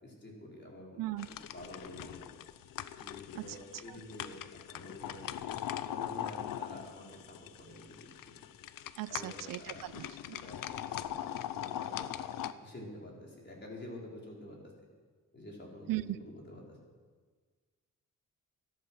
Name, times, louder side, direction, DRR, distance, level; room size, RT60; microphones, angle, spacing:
voice 1, 0.0-2.3 2.9-4.4 4.7-8.1 9.1-9.8 10.4-12.3 12.6-14.6 15.3-16.6, left 1 dB, 35° left, -2 dB, 4.7 m, -49 dB
sound 1, 1.2-12.5, left 11 dB, 85° left, 0.7 m, -41 dB
voice 2, 9.0-10.4 15.9-16.2, right 16 dB, 80° right, 17 dB, 0.5 m, -38 dB
14.0 x 12.0 x 6.4 m, 1.5 s
cardioid pair, 80°, 33 cm